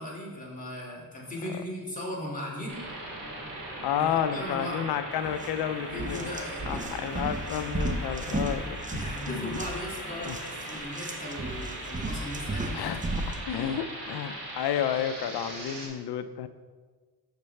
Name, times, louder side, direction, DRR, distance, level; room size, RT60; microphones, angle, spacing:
voice 1, 0.0-2.8 3.9-4.8 5.7-7.2 7.6-7.8 8.9-12.9, left 1 dB, 20° left, -4 dB, 2.1 m, -38 dB
sound 1, 2.7-15.9, right 1 dB, 60° right, 2.1 m, -39 dB
voice 2, 3.8-6.4 6.7-9.6 10.2-10.4 12.7-13.0 13.3-16.5, left 9 dB, 90° left, 11 dB, 0.5 m, -31 dB
sound 2, 5.3-5.5 5.9-13.4, right 2 dB, 20° right, 0.7 m, -35 dB
6.7 x 6.6 x 3.2 m, 1.5 s
cardioid pair, 80°, 38 cm